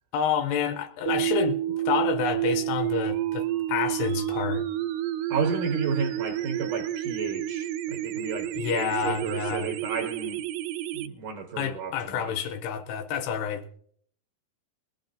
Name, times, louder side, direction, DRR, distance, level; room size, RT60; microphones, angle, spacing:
voice 1, 0.1-4.6 8.5-9.7 11.6-13.8, left 7 dB, 80° left, 2.6 m, -29 dB
sound 1, 1.1-11.1, right 13 dB, 85° right, 2.1 m, -30 dB
voice 2, 5.3-10.4 10.9-12.5, right 5 dB, 70° right, 2.1 m, -32 dB
21.0 x 14.0 x 2.6 m
omnidirectional pair, 4.9 m